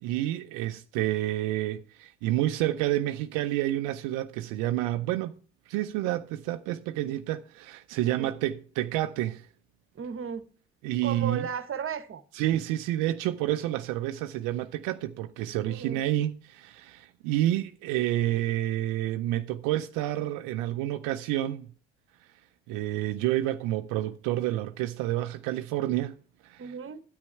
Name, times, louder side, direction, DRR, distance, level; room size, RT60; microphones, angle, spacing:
voice 1, 0.0-5.3 5.7-9.5 10.8-11.5 12.3-21.7 22.7-26.1 26.4-26.6, right 14 dB, 80° right, 0.5 m, -29 dB
voice 2, 8.1-8.4 9.9-10.5 11.0-12.2 15.7-16.0 26.6-27.0, right 7 dB, 45° right, 1.1 m, -35 dB
9.7 x 8.8 x 4.4 m
hypercardioid pair, 55°, 31 cm